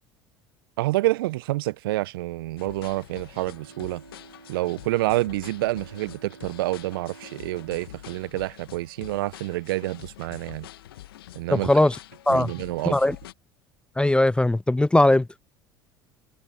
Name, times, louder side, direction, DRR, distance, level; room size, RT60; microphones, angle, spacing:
voice 1, 0.8-4.0 4.5-10.7 11.3-11.9 12.3-13.0, right 18 dB, 70° right, 1.2 m, -28 dB
sound 1, 2.6-13.3, left 14 dB, 75° left, 2.1 m, -46 dB
Bowed string instrument, 3.3-9.5 10.0-10.1, right 4 dB, 90° right, 5.3 m, -51 dB
voice 2, 11.5-12.0 12.3-12.5 12.9-13.2 14.0-15.3, left 1 dB, 10° left, 0.5 m, -19 dB
figure-of-eight pair, 65°, 12 cm